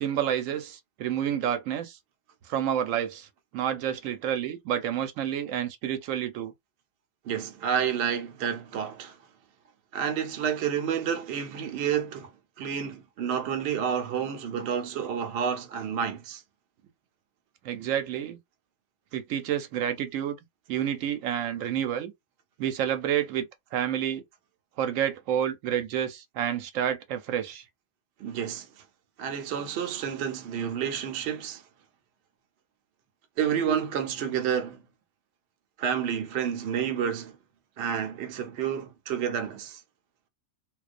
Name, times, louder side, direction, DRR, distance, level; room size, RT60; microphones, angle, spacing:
voice 1, 0.0-2.0 2.5-3.3 3.5-6.5 17.6-18.4 19.1-20.4 20.7-22.1 22.6-23.5 23.7-24.2 24.8-27.6, right 10 dB, 85° right, 1.0 m, -29 dB
voice 2, 7.2-9.2 9.9-16.4 28.2-28.8 29.2-31.6 33.4-34.8 35.8-37.4 37.8-39.8, right 8 dB, 65° right, 0.8 m, -30 dB
2.3 x 2.1 x 2.5 m
omnidirectional pair, 1.3 m